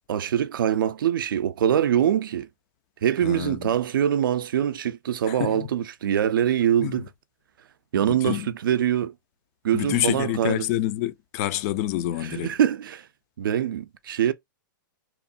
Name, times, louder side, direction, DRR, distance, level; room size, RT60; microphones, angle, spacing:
voice 1, 0.1-2.5 3.0-7.1 7.9-9.1 9.6-10.7 12.2-13.1 13.4-14.3, right 10 dB, 75° right, 0.4 m, -24 dB
voice 2, 3.2-3.7 5.3-5.7 6.8-7.0 8.0-8.5 9.7-12.5, left 14 dB, 45° left, 0.4 m, -27 dB
3.0 x 2.0 x 2.5 m
hypercardioid pair, 115°, 11 cm